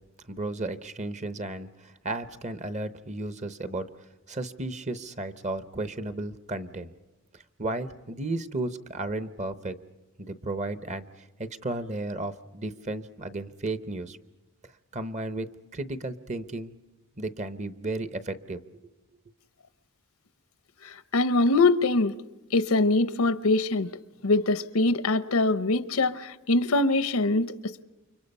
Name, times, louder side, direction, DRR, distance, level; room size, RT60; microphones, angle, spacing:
voice 1, 0.3-3.9 4.3-6.9 7.6-9.8 10.2-14.2 14.9-16.7 17.2-18.6, right 2 dB, 30° right, 0.9 m, -34 dB
voice 2, 20.8-22.1 22.5-23.9 24.2-27.8, left 2 dB, 80° left, 0.8 m, -23 dB
29.5 x 25.0 x 5.5 m
head